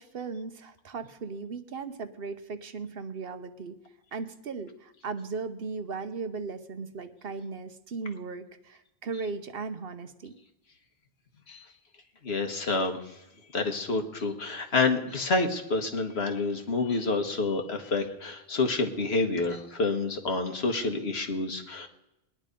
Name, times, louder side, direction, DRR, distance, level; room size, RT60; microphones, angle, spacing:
voice 1, 0.0-3.8 4.1-10.3, right 4 dB, 65° right, 9 dB, 1.1 m, -37 dB
voice 2, 12.2-13.0 13.5-21.9, left 3 dB, 75° left, 4 dB, 1.6 m, -28 dB
20.5 x 9.8 x 5.2 m, 0.91 s
omnidirectional pair, 1.1 m